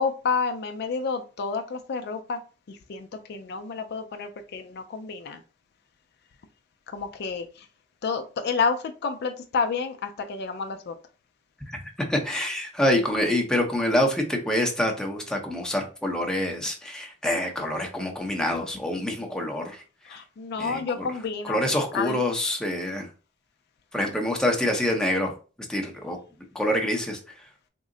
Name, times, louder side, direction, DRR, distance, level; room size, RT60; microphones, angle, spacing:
voice 1, 0.0-2.4 2.7-5.4 6.9-7.7 8.0-11.0 20.0-21.7 21.9-22.2, left 5 dB, 55° left, 6 dB, 0.4 m, -30 dB
voice 2, 12.1-19.8 20.6-21.1 21.5-23.1 23.9-25.3 25.7-26.2 26.5-27.2, left 1 dB, 5° left, 1 dB, 0.7 m, -26 dB
3.6 x 2.1 x 3.7 m, 0.35 s
head